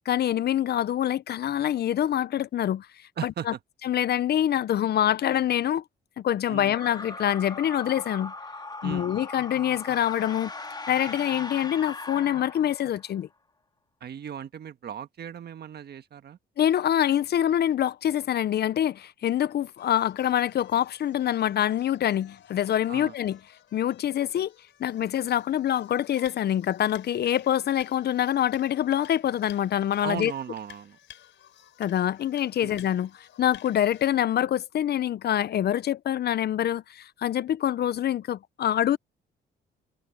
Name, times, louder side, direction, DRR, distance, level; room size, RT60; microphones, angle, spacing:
voice 1, 0.0-2.9 3.2-3.3 3.8-5.8 6.2-8.3 8.8-10.5 10.9-13.3 16.6-23.4 23.7-24.5 24.8-30.3 31.8-39.0, left 11 dB, 55° left, 0.6 m, -25 dB
voice 2, 3.2-3.6 6.5-6.8 8.8-9.1 14.0-16.4 22.9-23.1 30.0-31.0 32.6-32.8, right 9 dB, 55° right, 1.4 m, -37 dB
sound 1, 6.7-13.1, left 2 dB, 20° left, 2.8 m, -39 dB
sound 2, 19.7-34.1, left 10 dB, 70° left, 5.3 m, -53 dB
cardioid pair, 90°, 20 cm